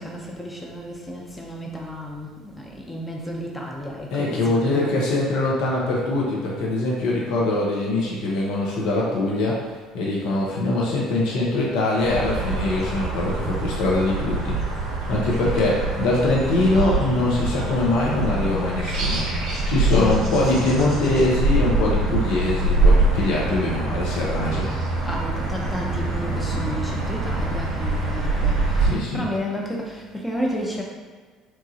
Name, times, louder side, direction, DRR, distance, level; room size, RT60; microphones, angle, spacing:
voice 1, 0.0-5.1 19.8-21.0 25.0-30.8, equal, 15° left, -1 dB, 0.6 m, -32 dB
voice 2, 4.1-9.6 9.9-14.6 15.1-24.7 28.8-29.2, left 2 dB, 65° left, -4 dB, 0.5 m, -23 dB
sound 1, 12.0-28.9, right 2 dB, 55° right, 0.6 m, -24 dB
3.0 x 2.3 x 2.7 m, 1.5 s
hypercardioid pair, 60°, 0 cm